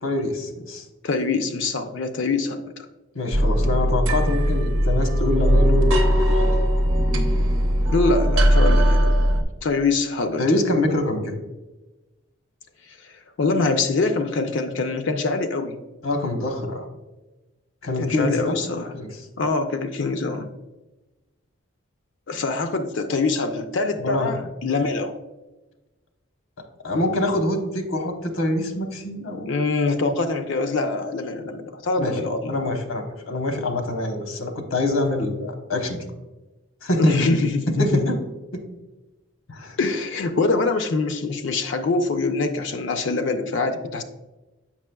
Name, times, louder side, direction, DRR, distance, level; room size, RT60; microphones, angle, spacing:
voice 1, 0.0-0.8 3.1-5.9 6.3-6.6 10.4-11.4 16.0-16.9 17.8-18.6 18.9-19.2 24.0-24.3 26.8-29.5 32.0-32.2 32.5-36.1 36.8-37.2 37.8-38.2 38.5-38.6 39.5-39.8, left 1 dB, 85° left, 4 dB, 1.0 m, -25 dB
voice 2, 1.0-2.9 7.9-9.1 9.6-10.4 13.0-15.8 18.0-18.9 19.4-20.5 22.3-25.2 29.5-32.6 37.0-38.0 39.8-44.0, left 3 dB, 65° left, 8 dB, 0.4 m, -24 dB
sound 1, 3.3-9.4, equal, 85° right, 0.8 m, -19 dB
7.3 x 5.8 x 2.2 m, 1.1 s
head